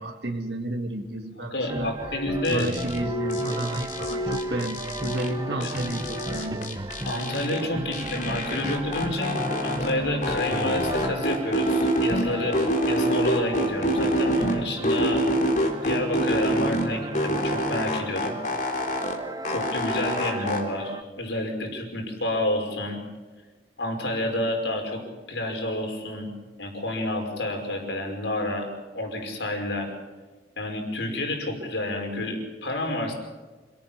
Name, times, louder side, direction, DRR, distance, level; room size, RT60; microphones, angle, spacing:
voice 1, 0.0-1.9 2.5-6.6, right 1 dB, 70° right, 2 dB, 1.9 m, -32 dB
voice 2, 1.4-2.7 5.6-6.0 7.1-15.2 15.7-18.4 19.5-23.0 23.8-25.0 25.3-26.3 26.6-28.7 28.9-29.9 30.6-33.1, left 1 dB, 85° left, 2 dB, 5.7 m, -29 dB
sound 1, 1.7-21.0, right 1 dB, 20° right, 1.1 m, -35 dB
Glass, 2.1-6.7 7.0-7.6 8.0-8.6 9.1-9.4, left 1 dB, 65° left, 1.6 m, -36 dB
sound 2, 2.4-3.0 3.3-5.3 5.6-7.6 7.9-9.9 10.2-12.2 12.5-14.5 14.8-16.8 17.1-19.2 19.4-20.6, equal, 45° left, 3.8 m, -26 dB
27.5 x 18.0 x 7.4 m, 1.3 s
head